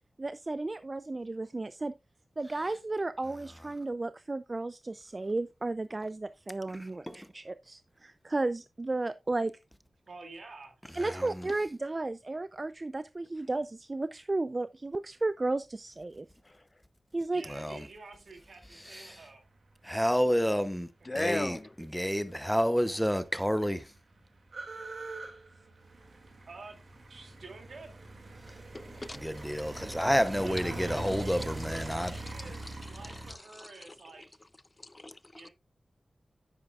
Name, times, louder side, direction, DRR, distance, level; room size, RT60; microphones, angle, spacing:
voice 1, 0.2-1.9 2.4-9.5 11.0-16.3 17.1-17.4, right 2 dB, 35° right, 0.4 m, -33 dB
voice 2, 10.1-11.2 17.3-19.4 26.5-26.8 27.1-28.0 30.4-34.4 35.3-35.5, right 3 dB, 75° right, 2.5 m, -49 dB
voice 3, 11.0-11.5 17.5-17.8 18.9-19.2 19.8-21.6 21.9-23.9 29.2-32.1, equal, ahead, 0.7 m, -30 dB
voice 4, 21.0-21.7 28.7-29.2 29.7-29.8 31.7-32.2 32.6-34.0 34.8-35.4, left 2 dB, 25° left, 0.4 m, -39 dB
sound 1, 22.7-22.8 23.0-33.3, right 2 dB, 55° right, 2.2 m, -42 dB
9.9 x 8.6 x 2.4 m
wide cardioid pair, 85°, 0 cm